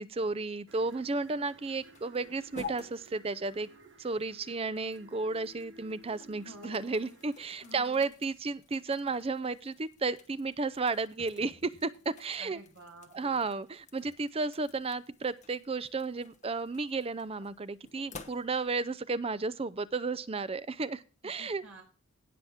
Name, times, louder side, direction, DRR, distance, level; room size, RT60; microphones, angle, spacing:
voice 1, 0.0-3.7 4.0-12.6 13.1-21.6, right 3 dB, 25° right, 16 dB, 0.5 m, -33 dB
sound 1, 0.7-7.5, right 2 dB, 60° right, 1.2 m, -56 dB
sound 2, 0.9-18.9, left 5 dB, 35° left, 1.1 m, -52 dB
voice 2, 6.4-7.2 7.6-8.2 12.4-13.5 21.2-21.8, right 1 dB, 75° right, 0 dB, 5.5 m, -51 dB
17.5 x 5.9 x 3.5 m, 0.37 s
head